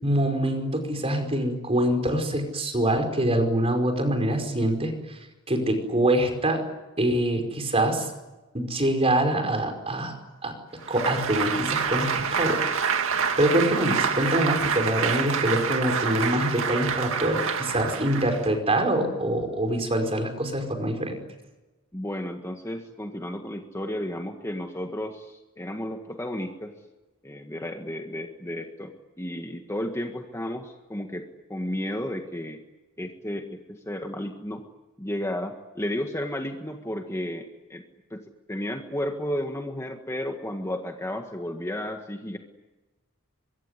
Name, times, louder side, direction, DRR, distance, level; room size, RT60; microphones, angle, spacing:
voice 1, 0.0-5.2 5.5-6.6 7.0-8.1 8.5-10.1 10.4-10.5 10.9-12.6 13.4-21.1, right 1 dB, 25° right, 6 dB, 5.2 m, -25 dB
Applause, 10.8-18.6, right 6 dB, 65° right, 2.3 m, -27 dB
voice 2, 21.9-26.7 27.2-32.6 33.0-34.6 35.0-37.8 38.1-42.4, left 1 dB, 15° left, 4 dB, 1.7 m, -33 dB
24.0 x 23.5 x 9.8 m, 1.1 s
head